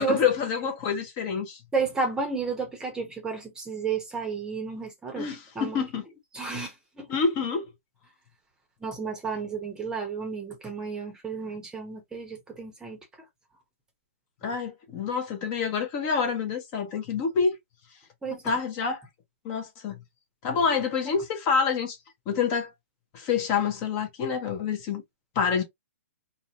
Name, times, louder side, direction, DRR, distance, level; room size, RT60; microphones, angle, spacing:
voice 1, 0.0-1.6 5.2-6.0 7.1-7.7 14.4-17.5 18.3-19.0 19.4-20.0 20.4-22.0 22.3-22.7 23.1-25.0 25.4-25.6, left 6 dB, 30° left, 0.6 m, -27 dB
voice 2, 1.7-5.3 5.6-5.8 6.3-7.1 8.8-13.0 18.2-18.6, right 4 dB, 10° right, 0.7 m, -32 dB
2.6 x 2.0 x 2.8 m
hypercardioid pair, 140°, 8 cm